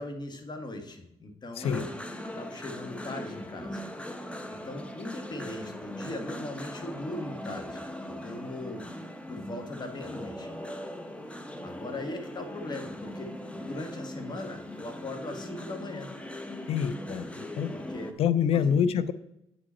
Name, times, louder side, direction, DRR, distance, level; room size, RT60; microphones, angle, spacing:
voice 1, 0.0-1.9 2.3-3.8 4.5-8.8 9.3-10.5 11.6-16.1 17.7-18.2 18.5-18.8, left 2 dB, 45° left, 6 dB, 1.4 m, -39 dB
voice 2, 1.6-1.9 16.7-17.7 18.2-19.1, left 7 dB, 70° left, 14 dB, 0.4 m, -26 dB
sound 1, 1.6-18.1, left 1 dB, 10° left, 0.9 m, -40 dB
8.3 x 5.0 x 4.3 m, 0.81 s
cardioid pair, 70°, 10 cm